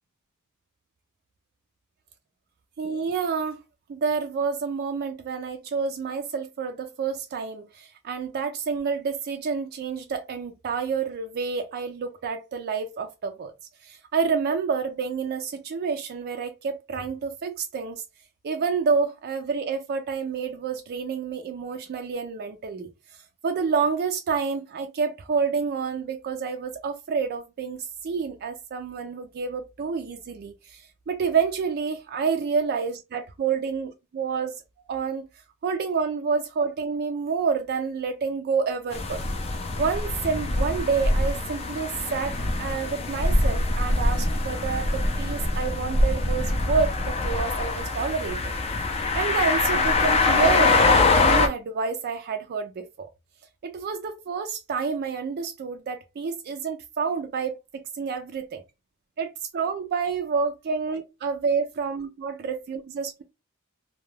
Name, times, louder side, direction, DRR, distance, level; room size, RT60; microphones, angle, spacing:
voice 1, 2.8-3.6 3.9-13.5 13.8-18.0 18.4-22.9 23.4-34.6 34.9-35.3 35.6-39.2 39.8-48.6 48.9-53.1 53.6-58.4 59.2-63.2, right 5 dB, 45° right, 0.4 m, -28 dB
sound 1, 38.9-51.5, left 3 dB, 30° left, 0.4 m, -24 dB
2.2 x 2.2 x 3.1 m
head